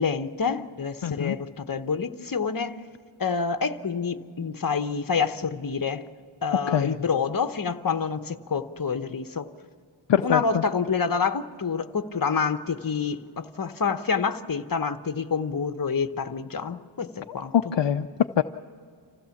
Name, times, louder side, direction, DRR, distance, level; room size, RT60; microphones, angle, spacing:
voice 1, 0.0-2.8 3.2-6.1 6.4-9.5 10.2-17.5, left 5 dB, 45° left, 9 dB, 1.0 m, -27 dB
voice 2, 1.0-1.4 6.7-6.9 10.1-10.6 17.5-18.1 18.4-18.5, left 9 dB, 60° left, 8 dB, 0.6 m, -23 dB
26.5 x 16.0 x 7.2 m, 2.1 s
wide cardioid pair, 65°, 49 cm